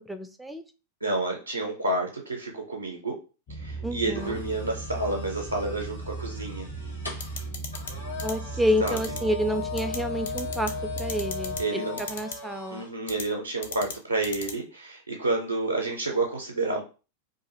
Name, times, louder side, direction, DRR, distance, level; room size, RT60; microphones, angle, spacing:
voice 1, 0.1-0.6 3.8-4.4 8.2-10.7 11.0-12.9, equal, 5° right, 8 dB, 0.3 m, -29 dB
voice 2, 1.0-3.2 3.5-6.7 8.8-9.0 11.6-12.0 12.7-16.8, right 2 dB, 85° right, 0 dB, 0.5 m, -29 dB
sound 1, 3.5-11.6, right 3 dB, 40° left, 0.8 m, -37 dB
sound 2, 4.1-12.9, left 5 dB, 85° left, 0.9 m, -38 dB
sound 3, 7.2-7.9 8.2-8.3 8.9-9.2 9.8-10.0 10.3-10.7 11.0-11.6 12.0-12.3 13.1-13.2 13.6-13.9 14.2-14.5, left 5 dB, 60° left, 0.5 m, -35 dB
2.5 x 2.4 x 2.9 m, 0.33 s
figure-of-eight pair, 90°, 0 cm